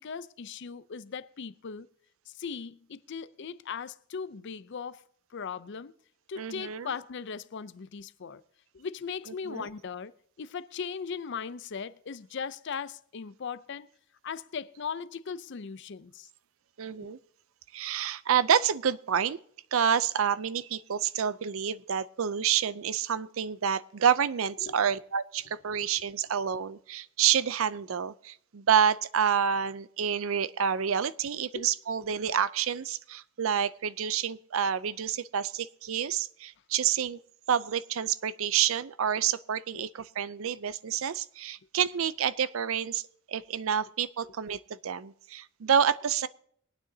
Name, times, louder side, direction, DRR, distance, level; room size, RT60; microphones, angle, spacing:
voice 1, 0.0-1.9 2.3-5.0 5.3-5.9 6.3-8.4 8.7-13.9 14.2-16.3 24.6-24.8 31.5-31.7 39.7-39.9, left 6 dB, 55° left, 0.5 m, -38 dB
voice 2, 6.4-6.9 9.5-9.7 16.8-17.2 17.7-19.4 19.7-37.2 37.5-43.0 43.3-46.3, right 8 dB, 70° right, 0.5 m, -28 dB
23.5 x 9.3 x 2.7 m
head